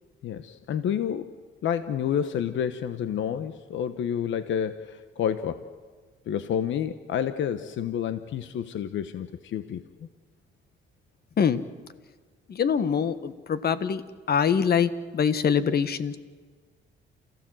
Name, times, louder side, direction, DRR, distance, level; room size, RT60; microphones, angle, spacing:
voice 1, 0.2-1.3 1.6-5.6 6.3-9.8, left 9 dB, 70° left, 11 dB, 1.1 m, -29 dB
voice 2, 12.5-16.2, left 7 dB, 50° left, 13 dB, 1.4 m, -24 dB
29.0 x 15.5 x 7.8 m, 1.5 s
cardioid pair, 90°, 20 cm